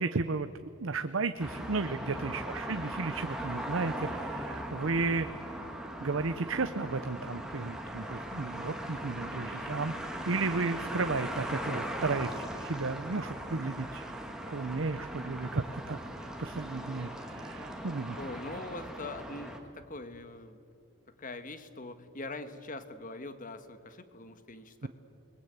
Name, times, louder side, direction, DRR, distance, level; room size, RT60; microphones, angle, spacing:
voice 1, 0.0-5.3 6.0-9.9 10.3-14.0 14.5-18.2 24.8-24.9, right 3 dB, 75° right, 10 dB, 0.8 m, -34 dB
sound 1, 1.4-19.6, right 1 dB, 5° right, 2.2 m, -39 dB
voice 2, 18.2-20.6 21.1-24.9, left 2 dB, 40° left, 10 dB, 1.5 m, -43 dB
28.5 x 21.0 x 8.2 m, 2.5 s
head